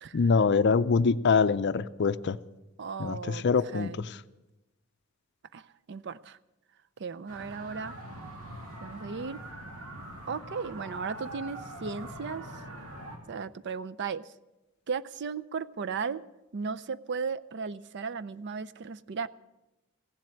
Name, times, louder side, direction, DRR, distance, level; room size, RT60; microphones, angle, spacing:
voice 1, 0.1-2.4 3.0-4.2, left 5 dB, 50° left, 14 dB, 0.5 m, -24 dB
voice 2, 2.8-3.4 3.7-4.0 5.5-6.4 7.0-8.0 8.8-9.4 10.3-12.5 13.3-14.3 14.9-16.2 16.5-19.3, right 5 dB, 55° right, 16 dB, 0.5 m, -36 dB
sound 1, 7.3-13.2, right 1 dB, 85° right, 2.7 m, -43 dB
16.0 x 7.6 x 9.6 m, 1.0 s
head